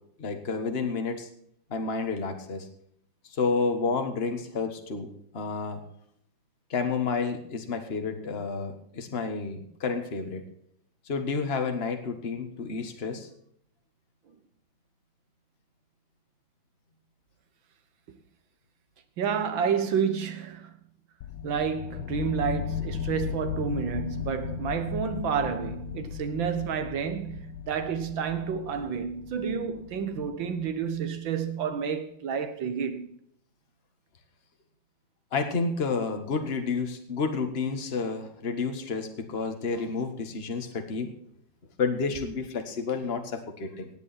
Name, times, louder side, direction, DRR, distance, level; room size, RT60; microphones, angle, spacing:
voice 1, 0.2-1.3 1.7-2.7 3.4-5.1 5.3-5.8 6.7-10.4 11.1-13.3 35.3-41.1 41.8-43.9, left 4 dB, 30° left, 1.6 m, -30 dB
voice 2, 19.2-20.7 21.4-33.1, right 7 dB, 65° right, 2.0 m, -30 dB
sound 1, 21.2-31.0, left 8 dB, 70° left, 1.2 m, -37 dB
18.5 x 8.2 x 4.3 m
omnidirectional pair, 2.3 m